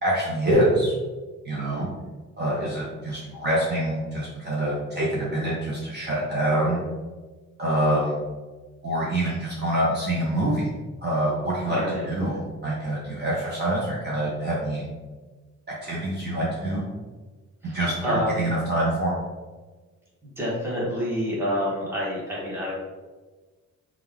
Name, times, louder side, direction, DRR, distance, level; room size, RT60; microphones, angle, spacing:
voice 1, 0.0-0.9 1.5-1.9 2.4-6.8 7.6-8.2 8.8-10.7 11.0-11.8 12.1-12.4 12.6-14.9 15.8-16.8 17.6-19.2, right 1 dB, 35° right, -6 dB, 0.8 m, -25 dB
voice 2, 11.6-12.4 17.6-18.5 20.2-22.7, equal, 10° right, -6 dB, 1.2 m, -28 dB
5.2 x 2.4 x 3.5 m, 1.3 s
wide cardioid pair, 165°, 29 cm